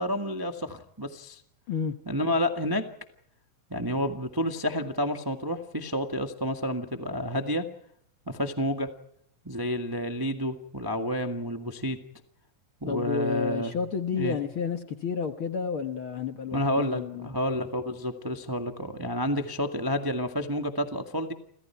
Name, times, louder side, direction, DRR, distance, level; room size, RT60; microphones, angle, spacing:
voice 1, 0.0-1.4 2.0-2.8 3.7-7.6 8.3-8.9 9.4-12.0 12.8-13.7 14.1-14.4 16.5-21.3, equal, 35° right, 0.3 m, -30 dB
voice 2, 12.9-17.3, left 6 dB, 55° left, 1.6 m, -31 dB
30.0 x 27.0 x 4.6 m
omnidirectional pair, 4.0 m